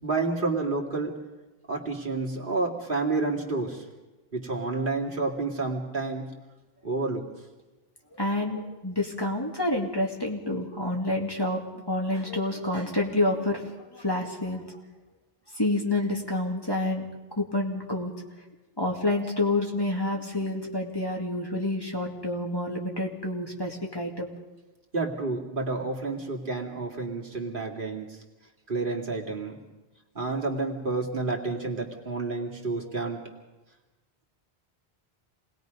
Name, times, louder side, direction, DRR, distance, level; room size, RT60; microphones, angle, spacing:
voice 1, 0.0-1.2 1.7-3.8 4.3-6.3 6.8-7.2 24.9-28.2 28.7-29.6 30.1-33.3, right 3 dB, 55° right, -1 dB, 2.5 m, -30 dB
voice 2, 8.2-14.8 15.5-17.1 17.4-18.1 18.8-24.3, left 1 dB, 20° left, -1 dB, 2.4 m, -28 dB
28.0 x 20.0 x 5.3 m, 1.1 s
omnidirectional pair, 1.0 m